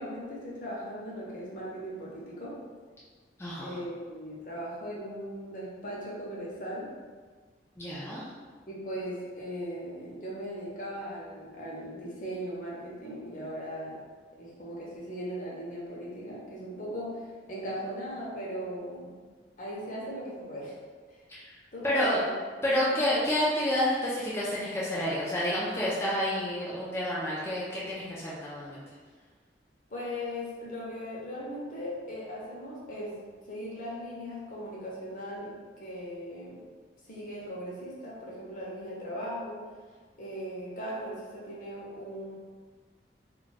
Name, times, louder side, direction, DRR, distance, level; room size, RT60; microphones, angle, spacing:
voice 1, 0.0-2.6 3.6-6.9 8.7-14.0 14.4-19.2 19.6-20.8 21.1-21.3 21.7-22.3 22.8-23.0 29.9-33.2 33.5-36.6 37.0-39.6 40.2-42.4, equal, 45° left, -5 dB, 0.7 m, -38 dB
voice 2, 3.4-3.7 7.8-8.3 21.3-21.6 21.8-22.2 22.6-28.8, left 1 dB, 15° left, -8 dB, 0.4 m, -29 dB
2.3 x 2.2 x 3.9 m, 1.5 s
head